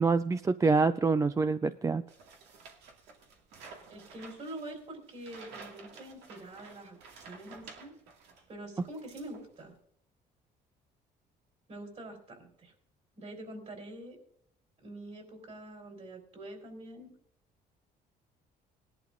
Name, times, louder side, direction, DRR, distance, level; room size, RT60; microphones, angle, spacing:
voice 1, 0.0-2.0, right 4 dB, 20° right, 12 dB, 0.4 m, -26 dB
sound 1, 2.1-8.5 8.8-9.7, right 4 dB, 85° right, 2.1 m, -52 dB
voice 2, 3.9-7.9 8.5-9.7 11.7-12.7 13.2-14.2 14.8-17.1, right 1 dB, 40° right, 3 dB, 4.3 m, -45 dB
19.0 x 11.0 x 2.6 m, 0.67 s
cardioid pair, 110°, 17 cm